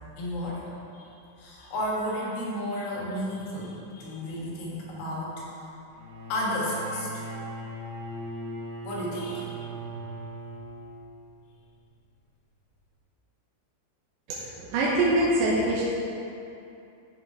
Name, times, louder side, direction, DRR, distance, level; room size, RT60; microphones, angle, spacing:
voice 1, 0.2-0.6 0.9-1.1 1.4-5.4 6.3-7.3 8.8-10.3, left 1 dB, 75° left, -5 dB, 4.2 m, -33 dB
Bowed string instrument, 5.9-11.2, right 2 dB, 55° right, 3.5 m, -38 dB
voice 2, 14.3-15.8, right 1 dB, 75° right, -6 dB, 2.8 m, -24 dB
13.5 x 5.5 x 3.4 m, 2.7 s
omnidirectional pair, 5.8 m